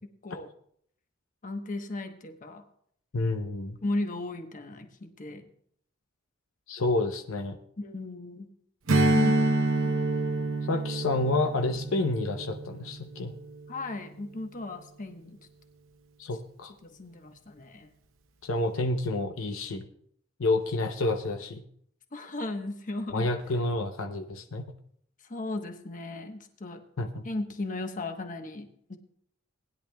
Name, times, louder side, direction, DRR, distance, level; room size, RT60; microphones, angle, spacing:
voice 1, 1.4-2.6 3.8-5.4 7.8-8.5 8.9-9.6 13.7-15.4 16.8-17.9 22.1-23.3 25.3-26.8 27.2-29.0, left 2 dB, 40° left, 5 dB, 1.1 m, -36 dB
voice 2, 3.1-3.8 6.7-7.6 10.7-13.3 16.2-16.7 18.4-19.9 20.4-21.6 23.1-24.6 27.0-27.3, left 2 dB, 75° left, 6 dB, 0.7 m, -29 dB
Strum, 8.9-13.7, right 2 dB, 75° right, 0.9 m, -27 dB
19.5 x 10.5 x 2.3 m, 0.65 s
head